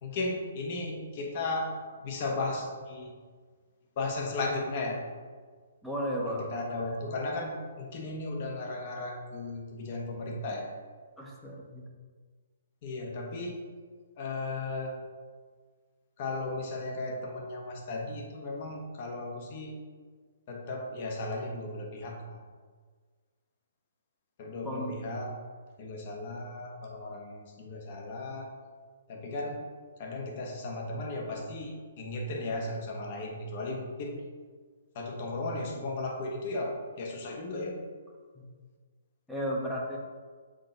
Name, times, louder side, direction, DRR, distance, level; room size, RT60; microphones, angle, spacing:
voice 1, 0.0-1.7 2.0-3.1 4.0-5.0 6.2-10.7 12.8-13.7 14.2-15.0 16.2-19.8 20.5-22.4 24.4-25.3 25.8-28.5 29.1-29.6 30.0-34.2 34.9-37.8, left 2 dB, 45° left, 1 dB, 1.3 m, -35 dB
voice 2, 5.8-6.5 11.2-11.9 24.6-24.9 38.3-38.5 39.3-40.0, equal, 5° left, -3 dB, 1.0 m, -34 dB
6.7 x 4.0 x 3.9 m, 1.6 s
hypercardioid pair, 135°, 0 cm